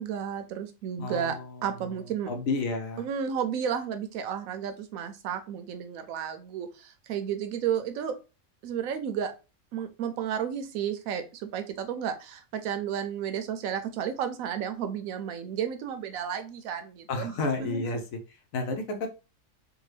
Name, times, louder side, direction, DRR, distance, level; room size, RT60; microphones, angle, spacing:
voice 1, 0.0-1.3 1.6-2.3 3.0-8.2 8.6-9.3 9.7-17.3 17.6-17.8, right 8 dB, 85° right, 8 dB, 1.0 m, -32 dB
voice 2, 1.0-2.0 2.3-3.1 17.1-18.2 18.5-19.1, left 3 dB, 80° left, 6 dB, 1.1 m, -31 dB
3.7 x 2.2 x 3.1 m, 0.31 s
omnidirectional pair, 1.4 m